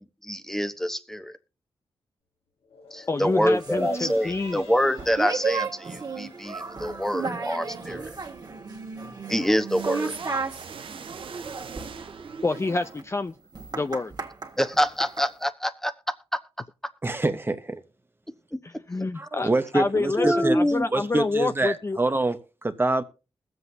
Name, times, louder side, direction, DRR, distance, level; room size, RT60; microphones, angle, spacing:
voice 1, 0.2-1.3 2.9-8.1 9.3-10.1 14.6-15.9 18.5-18.6 20.2-20.9, equal, 5° left, 1.1 m, -26 dB
sound 1, 2.6-9.2 9.6-9.7, left 4 dB, 80° left, 2.1 m, -52 dB
voice 2, 3.1-4.7 12.4-13.3 13.7-14.1 18.6-22.0, left 3 dB, 30° left, 0.6 m, -28 dB
sound 2, 3.6-15.3, right 4 dB, 45° right, 1.8 m, -34 dB
sound 3, 9.7-13.0, right 7 dB, 65° right, 0.6 m, -43 dB
voice 3, 17.0-17.8 19.1-20.6 20.9-23.0, right 2 dB, 25° right, 1.0 m, -25 dB
21.0 x 7.8 x 2.8 m
cardioid pair, 55°, 10 cm